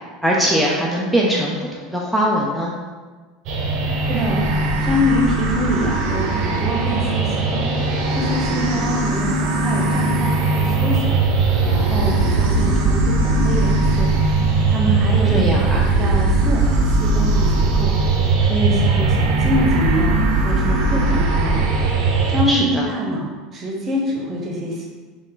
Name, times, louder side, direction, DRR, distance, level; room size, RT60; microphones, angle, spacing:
voice 1, 0.2-2.7 14.8-15.0 15.2-15.9 18.7-18.8 22.5-22.9, equal, ahead, -4 dB, 0.5 m, -21 dB
sound 1, 3.5-22.4, right 3 dB, 60° right, 0.7 m, -19 dB
voice 2, 4.1-15.4 16.0-20.2 20.4-21.7 22.1-24.9, equal, 30° right, -1 dB, 0.9 m, -25 dB
4.3 x 2.4 x 3.8 m, 1.4 s
supercardioid pair, 130°, 0 cm